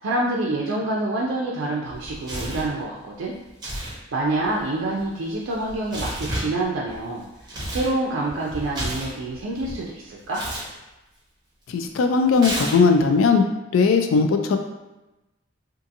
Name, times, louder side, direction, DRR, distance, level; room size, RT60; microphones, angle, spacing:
voice 1, 0.0-3.3 4.1-7.3 7.7-10.4, right 2 dB, 85° right, -4 dB, 0.4 m, -27 dB
Tearing, 1.9-2.7 3.5-4.0 4.2-7.9 8.3-9.8 10.3-10.7 12.3-13.0, right 1 dB, 20° right, 0.7 m, -32 dB
voice 2, 11.7-13.4 13.7-14.6, left 4 dB, 80° left, 6 dB, 0.3 m, -18 dB
2.5 x 2.5 x 2.7 m, 1.0 s
head